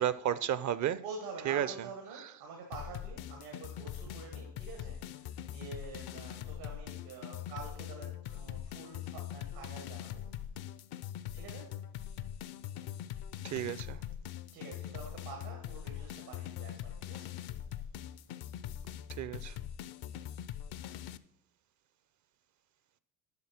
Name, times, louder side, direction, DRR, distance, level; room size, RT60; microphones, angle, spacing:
voice 1, 0.0-1.0 1.5-1.7 13.4-14.0 19.2-19.5, right 11 dB, 40° right, 0.5 m, -32 dB
voice 2, 0.7-10.3 11.3-11.8 14.5-17.4, right 4 dB, 85° right, 1.7 m, -47 dB
sound 1, 2.7-21.2, left 10 dB, 55° left, 0.6 m, -42 dB
8.0 x 5.6 x 5.7 m
hypercardioid pair, 65°, 46 cm